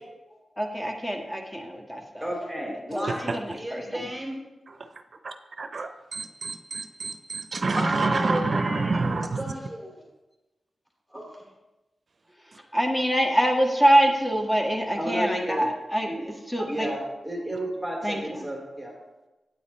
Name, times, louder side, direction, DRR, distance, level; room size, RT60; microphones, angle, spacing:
voice 1, 0.6-2.3 2.9-4.1 12.7-16.9 18.0-18.5, right 1 dB, 15° left, 2 dB, 1.7 m, -25 dB
voice 2, 2.2-4.4 7.8-10.0 11.1-11.5 15.0-15.6 16.0-16.4 16.7-18.9, right 1 dB, ahead, -2 dB, 2.8 m, -32 dB
voice 3, 5.2-9.4, right 3 dB, 60° right, 7 dB, 0.6 m, -28 dB
9.0 x 8.2 x 3.2 m, 1.0 s
cardioid pair, 50°, 0 cm